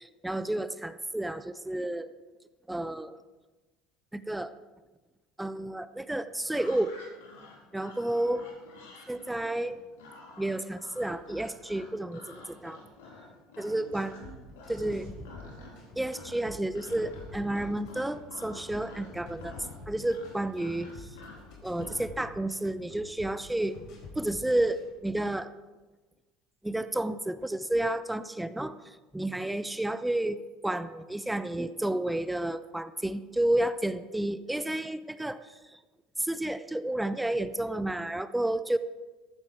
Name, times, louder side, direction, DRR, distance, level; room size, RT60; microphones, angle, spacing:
voice 1, 0.0-2.1 2.7-3.2 4.1-4.5 5.4-6.9 7.7-8.5 9.1-9.8 10.4-12.8 13.6-14.1 14.7-15.1 16.0-19.6 19.9-21.2 21.6-23.8 24.1-25.5 26.6-35.8 36.2-38.8, right 1 dB, 5° right, 13 dB, 0.7 m, -31 dB
sound 1, 6.4-14.3 14.5-15.0 15.2-15.8 16.1-22.1, left 3 dB, 80° left, 3.6 m, -49 dB
voice 2, 13.7-14.4 14.7-15.9, right 4 dB, 85° right, -4 dB, 2.9 m, -52 dB
sound 2, 14.1-24.9, left 3 dB, 60° left, 4.7 m, -48 dB
14.5 x 14.0 x 4.5 m, 1.2 s
hypercardioid pair, 80°, 0 cm